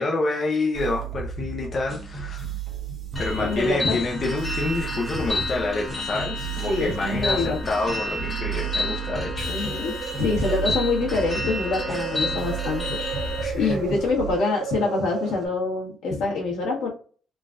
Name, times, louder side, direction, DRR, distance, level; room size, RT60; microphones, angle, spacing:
voice 1, 0.0-2.5 3.2-9.5 13.4-13.8, left 3 dB, 35° left, 0 dB, 0.6 m, -28 dB
sound 1, 0.7-14.3, right 5 dB, 25° right, 0.8 m, -33 dB
sound 2, 3.2-13.4, left 2 dB, 20° left, 0.9 m, -31 dB
voice 2, 3.4-4.0 6.7-7.8 9.4-13.0 13.5-16.9, left 3 dB, 75° left, -2 dB, 1.4 m, -25 dB
sound 3, 6.4-15.5, right 6 dB, 60° right, 0.8 m, -35 dB
3.8 x 2.4 x 2.4 m, 0.41 s
cardioid pair, 155°, 0 cm